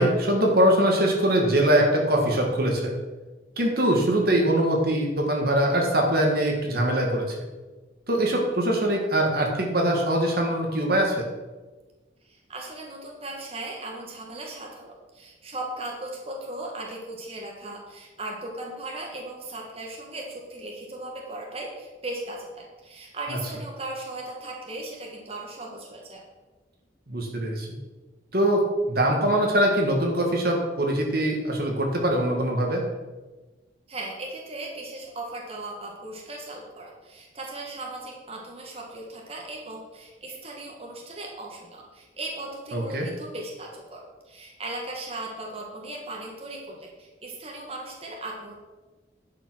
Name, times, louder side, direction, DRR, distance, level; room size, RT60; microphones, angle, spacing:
voice 1, 0.0-2.9 3.6-7.4 8.1-11.2 23.3-23.4 27.1-27.8 28.3-28.6 28.9-32.8 42.7-43.1, right 1 dB, 55° right, 0 dB, 1.7 m, -22 dB
voice 2, 12.2-26.2 33.9-48.6, right 2 dB, 30° right, -1 dB, 1.7 m, -37 dB
11.0 x 5.7 x 6.2 m, 1.2 s
head